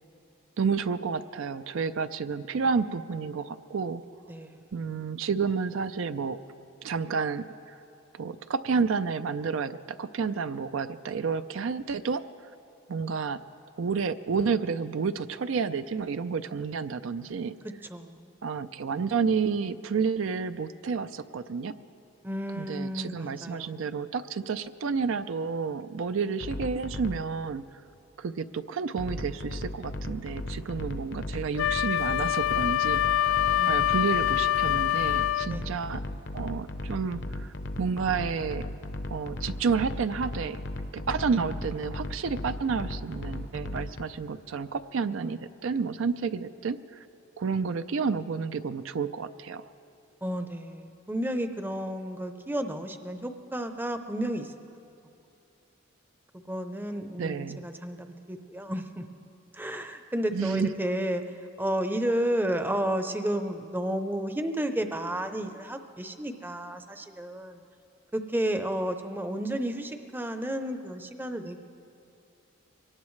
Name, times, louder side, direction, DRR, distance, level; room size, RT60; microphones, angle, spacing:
voice 1, 0.6-4.0 4.7-6.4 6.8-7.4 8.1-12.2 12.9-13.4 13.8-17.5 18.4-21.8 22.5-27.6 28.2-33.3 33.7-36.0 36.3-38.6 39.1-40.6 40.9-47.1 47.4-49.7 57.2-57.6 60.3-60.7, right 5 dB, 70° right, 12 dB, 0.4 m, -30 dB
voice 2, 4.3-4.8 17.6-18.3 22.2-23.8 33.6-33.9 35.5-35.7 50.2-54.5 56.3-59.0 59.5-67.6 68.1-71.6, right 1 dB, 10° right, 7 dB, 0.6 m, -32 dB
sound 1, 26.4-27.2 29.0-44.1, left 1 dB, 60° left, 0.8 m, -36 dB
Wind instrument woodwind instrument, 31.6-35.6, left 12 dB, 75° left, 0.3 m, -25 dB
23.5 x 18.5 x 3.2 m, 2.8 s
head